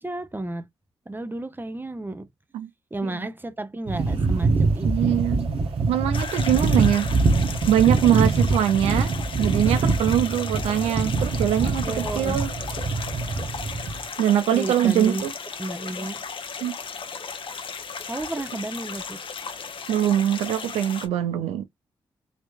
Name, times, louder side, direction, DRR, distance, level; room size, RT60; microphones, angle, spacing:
voice 1, 0.0-0.7 1.1-2.3 2.9-5.2 11.6-12.5 14.5-15.2 15.6-16.2 18.1-19.2, right 2 dB, 20° right, 1.0 m, -32 dB
sound 1, 3.9-14.0, right 3 dB, 70° right, 1.4 m, -24 dB
voice 2, 4.8-5.5 5.9-7.1 7.7-9.1 9.4-12.5 14.2-15.3 16.6-16.7 19.9-21.7, right 11 dB, 85° right, 0.5 m, -22 dB
sound 2, 6.1-21.1, left 5 dB, 55° left, 1.1 m, -36 dB
4.3 x 3.1 x 2.4 m
supercardioid pair, 40°, 10 cm